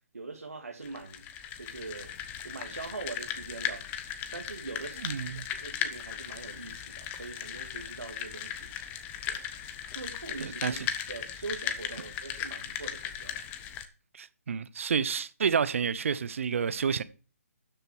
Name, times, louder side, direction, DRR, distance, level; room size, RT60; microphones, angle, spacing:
voice 1, 0.1-1.3 1.6-2.2 2.4-3.9 4.3-5.1 5.3-8.7 9.3-9.4 9.9-10.8 11.1-13.5, right 3 dB, 80° right, 2.1 m, -42 dB
sound 1, 0.8-13.9, left 9 dB, 20° left, 1.1 m, -37 dB
voice 2, 5.0-5.4 10.4-10.9 14.1-17.0, right 6 dB, 55° right, 0.9 m, -29 dB
12.5 x 6.7 x 4.7 m
figure-of-eight pair, 140°, 8 cm